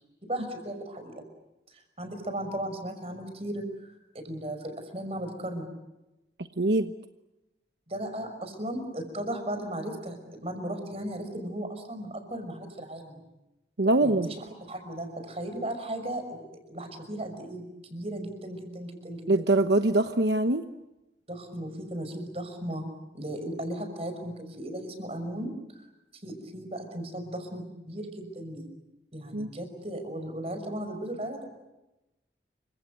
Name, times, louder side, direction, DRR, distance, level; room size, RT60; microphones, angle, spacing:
voice 1, 0.3-1.2 1.7-5.7 7.9-13.3 14.0-19.3 21.3-22.9 23.1-28.7 29.1-31.4, right 1 dB, 35° right, 7 dB, 5.8 m, -36 dB
voice 2, 6.6-6.9 13.8-14.3 19.3-20.7 29.3-29.5, right 2 dB, 75° right, 8 dB, 1.1 m, -23 dB
29.5 x 25.5 x 7.8 m, 0.97 s
head